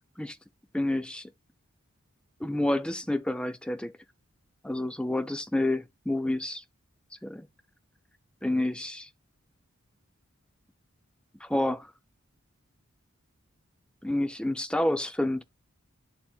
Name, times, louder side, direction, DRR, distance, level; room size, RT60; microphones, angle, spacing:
voice 1, 0.7-1.3 2.4-3.9 4.6-6.6 7.1-7.5 8.4-9.1 11.4-11.9 14.0-15.4, left 1 dB, 5° left, 0.4 m, -29 dB
11.5 x 4.3 x 2.3 m
head